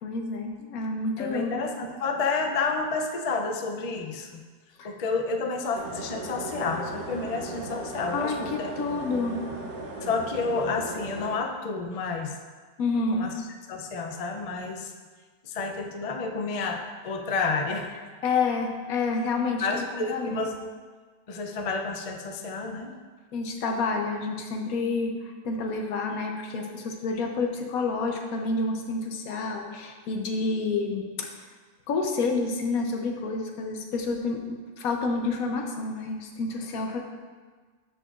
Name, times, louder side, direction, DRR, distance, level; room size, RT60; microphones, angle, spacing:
voice 1, 0.0-1.6 4.8-4.9 8.1-9.5 12.8-13.3 18.2-20.5 23.3-31.4 31.9-37.0, left 3 dB, 75° left, 3 dB, 1.2 m, -29 dB
voice 2, 1.2-4.4 4.8-8.7 10.0-12.4 13.1-13.3 13.7-14.9 15.4-17.9 19.6-20.6 21.3-22.9, left 4 dB, 60° left, 3 dB, 0.3 m, -30 dB
sound 1, 5.7-11.4, right 2 dB, 85° right, 1.3 m, -37 dB
13.0 x 4.8 x 2.5 m, 1.5 s
omnidirectional pair, 1.5 m